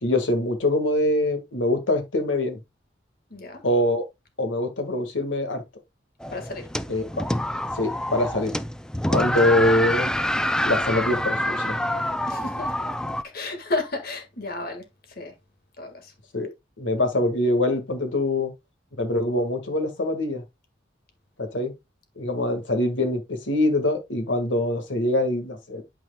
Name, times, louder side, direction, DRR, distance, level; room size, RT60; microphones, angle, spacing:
voice 1, 0.0-2.6 3.6-4.0 4.4-5.6 6.9-7.3 7.8-8.5 9.1-10.1 10.6-11.8 16.3-16.5 16.8-18.5 19.0-20.4 21.4-21.7 22.2-25.8, left 1 dB, 85° left, 1.8 m, -24 dB
voice 2, 3.3-3.6 6.3-6.7 12.3-12.7 13.2-15.4 15.8-16.1, left 2 dB, 55° left, 1.8 m, -32 dB
sound 1, 6.2-13.2, left 1 dB, 5° left, 0.3 m, -26 dB
11.5 x 4.8 x 2.3 m
head